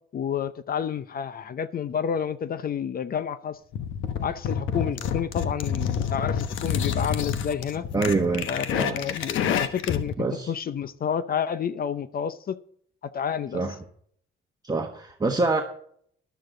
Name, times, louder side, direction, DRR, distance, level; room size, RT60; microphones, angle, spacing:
voice 1, 0.1-3.6 4.2-7.8 8.5-12.6 13.1-13.6, left 8 dB, 50° left, 0.7 m, -30 dB
sound 1, 3.7-10.1, left 8 dB, 80° left, 1.1 m, -28 dB
voice 2, 7.9-9.0 10.2-10.5 13.5-13.7 14.6-15.6, right 3 dB, 20° right, 1.3 m, -26 dB
13.0 x 11.5 x 3.9 m
cardioid pair, 90°, 20 cm